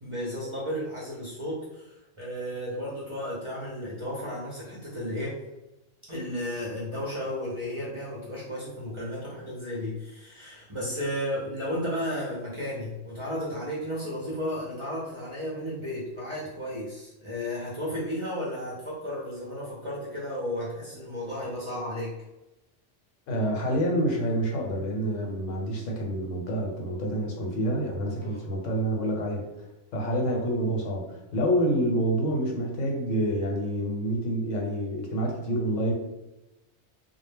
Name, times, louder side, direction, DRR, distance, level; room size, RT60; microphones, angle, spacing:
voice 1, 0.0-5.4 6.1-22.1 28.2-28.4, equal, 40° right, -7 dB, 0.4 m, -33 dB
voice 2, 23.3-29.4 29.9-35.9, right 1 dB, 90° left, 0 dB, 1.0 m, -27 dB
2.1 x 2.0 x 3.3 m, 0.97 s
omnidirectional pair, 1.2 m